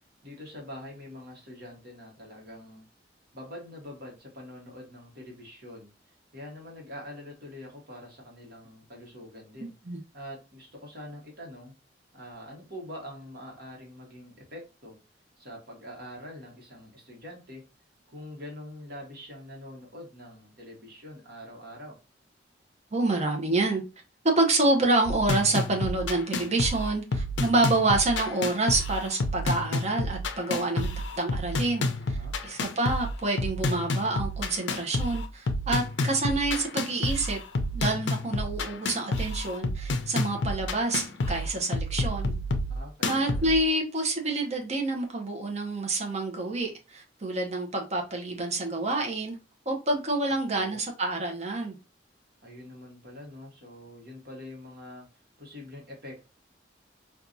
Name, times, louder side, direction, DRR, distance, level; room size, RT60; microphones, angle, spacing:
voice 1, 0.2-2.8 3.3-9.7 10.1-11.7 12.1-14.9 15.4-17.6 18.1-22.0 32.1-32.3 42.7-43.5 50.5-50.8 52.4-56.4, left 1 dB, 55° right, 1.3 m, -44 dB
voice 2, 9.6-10.0 22.9-23.8 24.4-30.9 31.2-32.2 32.4-37.4 37.7-42.3 43.0-49.4 49.7-51.8, right 2 dB, 35° right, 0.8 m, -28 dB
sound 1, 25.1-43.6, left 2 dB, 75° left, 0.5 m, -30 dB
4.5 x 2.3 x 2.6 m
head